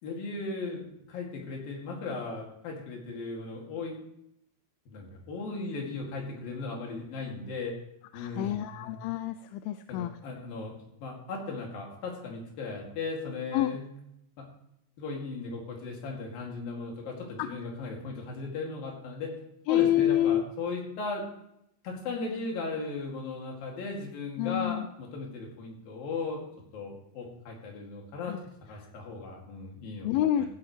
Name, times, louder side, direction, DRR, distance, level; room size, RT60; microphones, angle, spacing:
voice 1, 0.0-4.0 4.9-7.7 8.1-9.0 9.9-13.9 14.4-14.5 15.0-19.3 19.7-21.2 21.8-26.4 26.7-28.3 28.7-30.1 30.4-30.5, left 3 dB, 65° left, 0 dB, 4.0 m, -37 dB
voice 2, 8.1-10.1 13.5-13.7 17.4-17.5 19.7-20.4 24.4-24.8 28.3-28.4 30.0-30.5, left 12 dB, 85° left, 10 dB, 2.3 m, -27 dB
15.5 x 9.7 x 3.2 m, 0.78 s
omnidirectional pair, 4.5 m